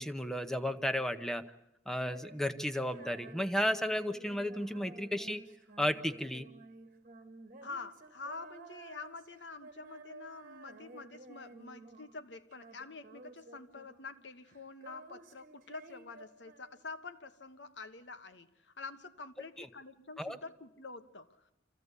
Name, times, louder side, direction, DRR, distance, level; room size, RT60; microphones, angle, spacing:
voice 1, 0.0-1.4 1.9-5.4 5.8-6.5 19.6-19.7 20.2-20.4, equal, 5° left, 7 dB, 0.8 m, -33 dB
Female singing, 1.9-12.2 12.5-14.2 14.4-17.1, right 3 dB, 45° right, 1.4 m, -54 dB
voice 2, 7.6-21.5, left 4 dB, 75° left, 10 dB, 1.3 m, -47 dB
26.0 x 15.5 x 8.3 m, 0.92 s
head